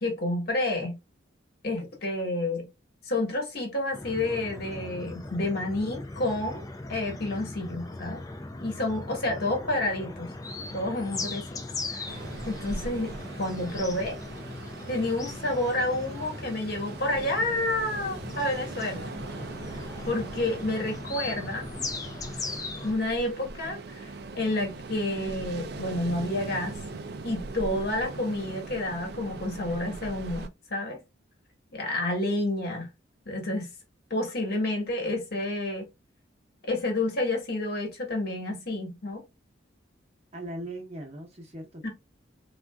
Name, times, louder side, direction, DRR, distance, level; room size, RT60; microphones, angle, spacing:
voice 1, 0.0-1.0 1.6-2.7 3.0-8.2 8.6-10.3 10.7-11.6 11.9-12.2 12.4-14.2 14.9-19.1 20.0-21.7 22.8-26.7 27.2-31.0 31.7-32.9 33.3-33.7 34.1-35.9 36.6-39.2 41.8-41.9, left 1 dB, 50° left, 1.2 m, -29 dB
sound 1, 3.9-22.9, left 2 dB, 20° left, 0.4 m, -39 dB
Ocean, 12.1-30.5, right 3 dB, 55° right, 0.4 m, -40 dB
voice 2, 40.3-41.9, right 1 dB, 35° right, 0.8 m, -39 dB
3.7 x 2.4 x 2.2 m
head